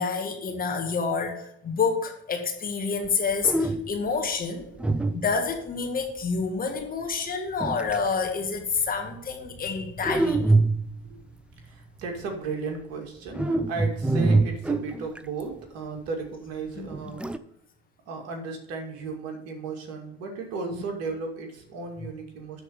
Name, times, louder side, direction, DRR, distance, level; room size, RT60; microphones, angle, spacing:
voice 1, 0.0-4.7 5.1-10.6 16.8-16.9 20.7-20.8, left 5 dB, 30° left, 2 dB, 1.9 m, -28 dB
sound 1, 3.0-3.1 3.4-4.1 4.8-5.7 7.6-8.1 10.0-11.1 13.3-15.4 16.9-17.4, right 2 dB, 5° right, 0.4 m, -25 dB
voice 2, 11.6-17.2 18.1-22.6, right 4 dB, 50° right, 2 dB, 2.4 m, -35 dB
12.5 x 4.2 x 6.7 m, 0.73 s
figure-of-eight pair, 70°, 31 cm